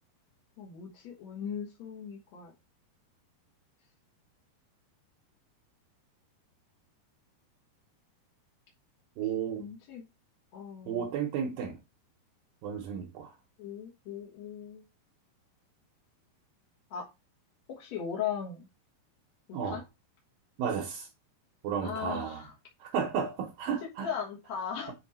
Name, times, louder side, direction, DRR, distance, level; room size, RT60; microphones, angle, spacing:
voice 1, 0.6-2.5 9.6-10.0 10.5-11.0 13.6-14.8 16.9-17.1 17.7-18.7 19.5-19.8 21.8-22.5 24.0-24.9, left 7 dB, 55° left, 2.2 m, -38 dB
voice 2, 9.2-9.6 10.9-11.8 12.6-13.3 19.5-19.8 20.6-21.1 21.6-22.4 22.8-24.1, right 7 dB, 70° right, 2.5 m, -33 dB
7.8 x 4.4 x 4.3 m
omnidirectional pair, 4.7 m